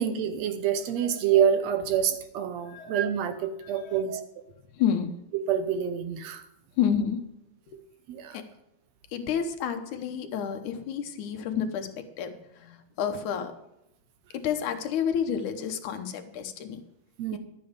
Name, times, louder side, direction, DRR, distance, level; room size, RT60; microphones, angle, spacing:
voice 1, 0.0-4.2 5.3-6.5 8.1-8.4 17.2-17.4, right 8 dB, 70° right, 9 dB, 1.8 m, -27 dB
voice 2, 2.7-3.0 3.6-4.0 4.7-5.1 6.8-7.2 7.7-7.8 8.3-8.4 9.1-13.5 14.3-16.8 17.3-17.4, left 8 dB, 80° left, 7 dB, 2.5 m, -30 dB
11.5 x 9.3 x 5.1 m, 0.86 s
omnidirectional pair, 3.4 m